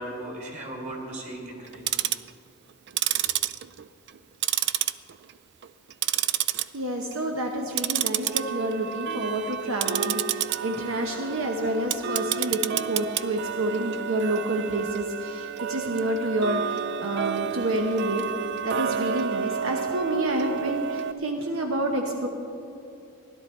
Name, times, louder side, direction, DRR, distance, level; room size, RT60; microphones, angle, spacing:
voice 1, 0.0-1.9 3.2-3.3, right 1 dB, 30° right, -1 dB, 2.3 m, -37 dB
Tick-tock, 1.7-2.3 2.9-4.2 4.4-5.3 5.6-6.6 7.0-7.3 7.7-21.1, right 9 dB, 50° right, 0.3 m, -29 dB
voice 2, 6.7-18.3 18.6-22.3, right 1 dB, 70° right, 2 dB, 0.9 m, -28 dB
16.5 x 11.5 x 4.3 m, 2.7 s
head